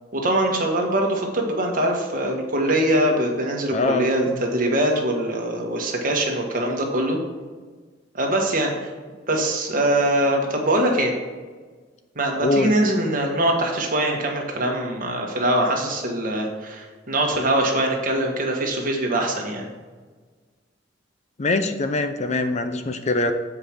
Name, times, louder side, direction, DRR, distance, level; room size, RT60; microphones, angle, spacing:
voice 1, 0.1-7.2 8.1-8.9 9.3-11.1 12.1-19.7, right 1 dB, 50° right, 1 dB, 1.5 m, -23 dB
voice 2, 3.7-4.4 12.4-12.7 21.4-23.3, left 2 dB, 40° left, 8 dB, 0.6 m, -23 dB
7.6 x 4.9 x 5.9 m, 1.4 s
head